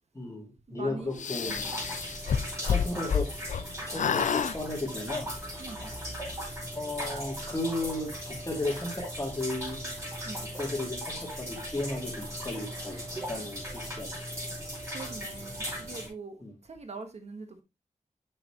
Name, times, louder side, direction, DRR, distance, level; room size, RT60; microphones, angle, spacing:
voice 1, 0.1-1.5 2.6-3.3 3.9-5.3 6.7-9.8 10.6-13.0 13.3-14.1 16.4-16.5, left 2 dB, 25° left, 2.6 m, -34 dB
voice 2, 0.7-1.7 5.6-5.9 10.2-10.5 14.9-17.6, right 4 dB, 55° right, 1.2 m, -43 dB
sound 1, 1.2-3.7 3.9-4.6, left 7 dB, 70° left, 0.5 m, -28 dB
sound 2, 1.4-16.1, equal, 25° right, 4.9 m, -38 dB
6.7 x 6.2 x 2.9 m
wide cardioid pair, 90°, 13 cm